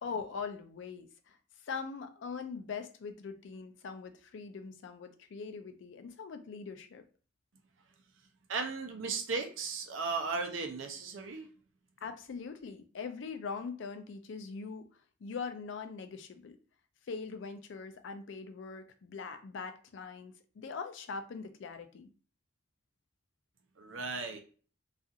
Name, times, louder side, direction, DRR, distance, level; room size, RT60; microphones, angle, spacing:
voice 1, 0.0-1.4 1.6-7.0 12.0-14.9 15.2-16.6 17.1-22.1, left 5 dB, 65° left, 0.4 m, -42 dB
voice 2, 8.5-11.5 23.8-24.4, right 4 dB, 70° right, 0.6 m, -36 dB
2.4 x 2.4 x 2.7 m
head